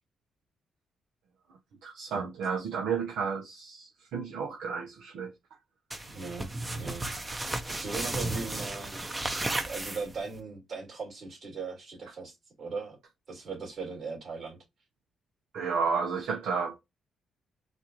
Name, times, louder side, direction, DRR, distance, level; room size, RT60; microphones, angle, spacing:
voice 1, 1.8-5.3 15.5-16.8, right 5 dB, 85° right, 0.8 m, -32 dB
sound 1, 5.9-10.4, right 2 dB, 20° right, 0.7 m, -34 dB
voice 2, 6.1-7.1 7.7-9.2 9.7-13.0 13.3-14.6, right 4 dB, 55° right, 2.5 m, -39 dB
4.2 x 2.5 x 3.0 m
cardioid pair, 95°, 0 cm